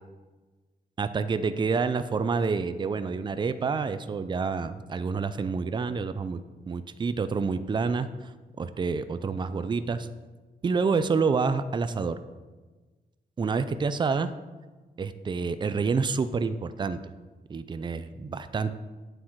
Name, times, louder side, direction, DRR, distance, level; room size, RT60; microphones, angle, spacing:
voice 1, 1.0-6.4 6.7-8.1 8.6-10.1 10.6-12.2 13.4-14.3 15.0-17.0 17.5-18.7, right 5 dB, 30° right, 11 dB, 0.5 m, -28 dB
8.7 x 7.7 x 4.6 m, 1.3 s
wide cardioid pair, 135°, 16 cm